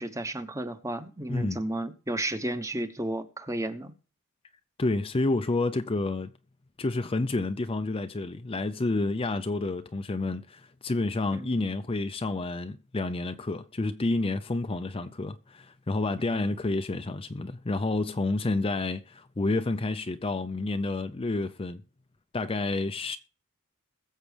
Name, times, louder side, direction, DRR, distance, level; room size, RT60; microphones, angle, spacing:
voice 1, 0.0-3.9 11.3-11.5 16.2-16.5, right 1 dB, 15° right, 1.0 m, -33 dB
voice 2, 4.8-6.3 6.8-21.8 22.3-23.2, left 2 dB, 25° left, 0.5 m, -29 dB
21.5 x 7.4 x 3.3 m
head